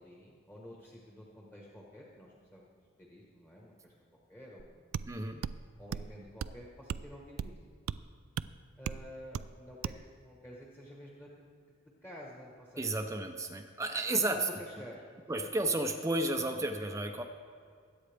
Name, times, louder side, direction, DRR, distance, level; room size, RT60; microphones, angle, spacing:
voice 1, 0.0-2.7 3.0-3.9 4.3-4.8 5.8-7.6 8.8-11.5 12.0-12.9 14.1-15.0 15.3-15.5, equal, 10° left, -3 dB, 1.3 m, -50 dB
sound 1, 4.6-4.7 4.9-5.1 5.4-5.6 5.9-6.1 6.4-6.6 6.9-7.1 7.4-7.6 7.9-8.0 8.4-8.5 8.9-9.0 9.3-9.5 9.8-10.0, right 7 dB, 85° right, 0.3 m, -36 dB
voice 2, 5.1-5.4 12.8-14.4 15.3-17.2, right 2 dB, 15° right, 5 dB, 0.6 m, -32 dB
22.0 x 8.7 x 3.5 m, 2.1 s
head